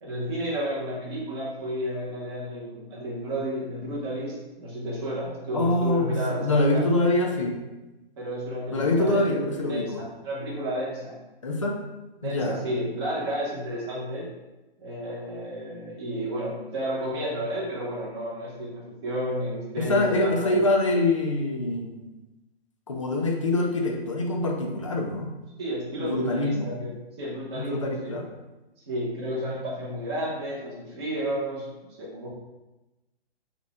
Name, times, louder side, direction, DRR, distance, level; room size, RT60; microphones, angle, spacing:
voice 1, 0.0-6.9 8.2-9.3 9.7-11.2 12.2-14.3 14.8-20.6 25.6-26.9 27.2-28.2 28.9-32.3, equal, 25° right, -6 dB, 1.0 m, -32 dB
voice 2, 5.5-7.6 8.7-10.0 11.4-11.8 12.2-12.6 19.8-22.1 22.9-25.3 26.0-26.7 27.5-28.3, left 2 dB, 35° left, 1 dB, 0.4 m, -25 dB
4.2 x 2.4 x 3.5 m, 1.1 s
hypercardioid pair, 170°, 31 cm